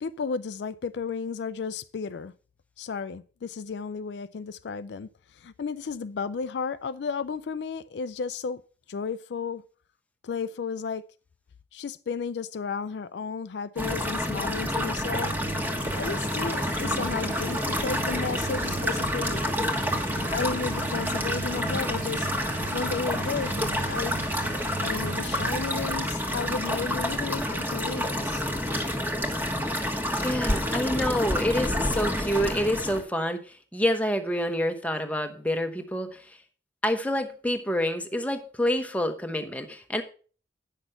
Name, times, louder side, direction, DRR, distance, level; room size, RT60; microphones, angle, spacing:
voice 1, 0.0-2.3 2.8-8.6 8.9-9.6 10.2-11.1 11.7-15.4 15.8-19.4 20.3-22.3 22.7-24.2 24.8-28.4, left 5 dB, 70° left, 0.4 m, -33 dB
sound 1, 13.8-33.0, equal, 10° right, 1.4 m, -29 dB
sound 2, 15.1-28.8 29.3-29.4, right 4 dB, 45° right, 0.4 m, -39 dB
voice 2, 30.2-36.4 36.8-40.0, equal, 10° left, 1.0 m, -27 dB
9.0 x 6.2 x 5.5 m
head